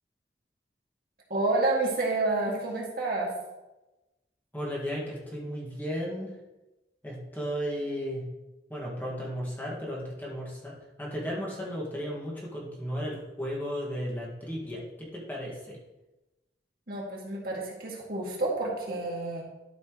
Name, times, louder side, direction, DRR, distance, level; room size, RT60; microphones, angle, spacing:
voice 1, 1.3-3.3 16.9-19.4, right 2 dB, 55° right, -3 dB, 2.2 m, -29 dB
voice 2, 4.5-6.3 7.0-8.2 8.7-15.8, equal, 10° left, -5 dB, 1.9 m, -35 dB
12.5 x 6.0 x 3.1 m, 1.0 s
head